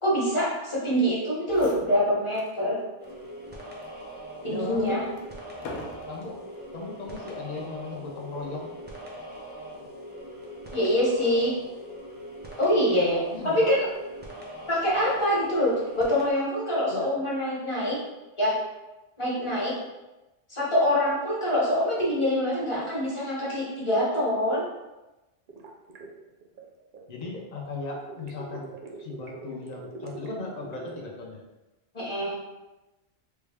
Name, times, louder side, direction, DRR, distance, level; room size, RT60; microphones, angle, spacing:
voice 1, 0.0-2.8 4.4-5.0 10.7-11.5 12.6-13.9 14.7-18.0 18.4-18.5 19.2-19.7 20.5-24.6 31.9-32.4, equal, 25° left, -7 dB, 1.0 m, -25 dB
sound 1, 1.2-1.3 1.4-2.6 3.0-3.2 3.8-6.4 7.2-7.5, left 2 dB, 85° left, 0.9 m, -43 dB
sound 2, 3.0-16.3, equal, 15° right, 0.3 m, -42 dB
voice 2, 4.5-5.2 6.1-6.4 6.7-8.7 13.3-13.8 16.9-17.1 27.1-28.7 29.0-31.4, left 3 dB, 45° left, -1 dB, 0.6 m, -37 dB
sound 3, 25.5-27.3 27.9-31.1, right 3 dB, 55° right, 0.6 m, -42 dB
3.5 x 2.3 x 3.3 m, 1.1 s
omnidirectional pair, 1.2 m